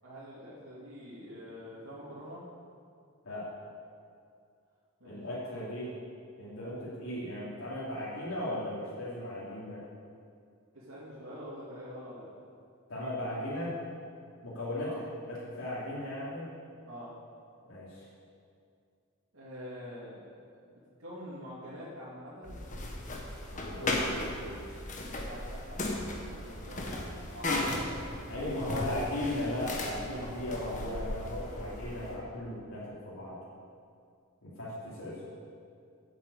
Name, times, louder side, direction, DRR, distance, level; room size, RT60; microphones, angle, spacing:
voice 1, 0.0-2.4 5.0-5.2 10.7-12.3 14.8-15.0 16.9-17.1 19.3-20.3 20.7-22.6 25.0-27.9 28.4-29.2, equal, 85° right, -11 dB, 3.1 m, -45 dB
voice 2, 5.0-5.9 6.4-9.8 12.9-13.8 14.4-16.5 17.7-18.1 23.5-24.9 28.3-33.4 34.4-35.2, left 1 dB, 85° left, -9 dB, 3.0 m, -37 dB
sound 1, 22.4-32.2, left 2 dB, 35° left, 1.3 m, -36 dB
8.6 x 8.5 x 8.4 m, 2.4 s
head